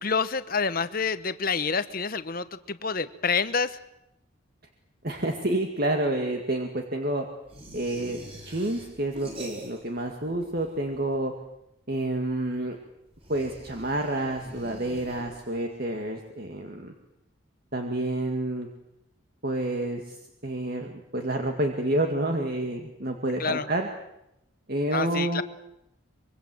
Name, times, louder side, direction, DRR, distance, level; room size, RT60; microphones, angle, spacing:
voice 1, 0.0-3.8 23.4-23.7 24.9-25.4, left 5 dB, 45° left, 13 dB, 1.1 m, -28 dB
voice 2, 5.0-7.3 7.7-11.3 11.9-12.8 13.3-16.9 17.7-18.7 19.4-20.2 20.4-23.9 24.7-25.4, right 1 dB, 45° right, 3 dB, 2.1 m, -29 dB
sound 1, 7.5-10.1 10.3-11.2 13.1-15.7, right 1 dB, 30° right, 7.5 m, -45 dB
25.0 x 23.5 x 7.8 m, 0.85 s
head